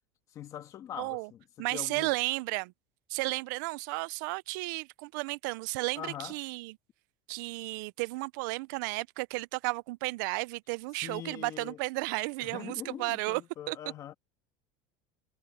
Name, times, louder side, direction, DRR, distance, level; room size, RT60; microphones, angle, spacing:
voice 1, 0.3-2.1 6.0-6.4 11.0-11.8 12.4-14.1, left 11 dB, 30° left, 1.6 m, -43 dB
voice 2, 1.0-1.3 1.6-2.7 3.1-6.7 7.3-13.4 13.7-13.8, right 24 dB, 70° right, 0.5 m, -33 dB
cardioid pair, 165°, 11 cm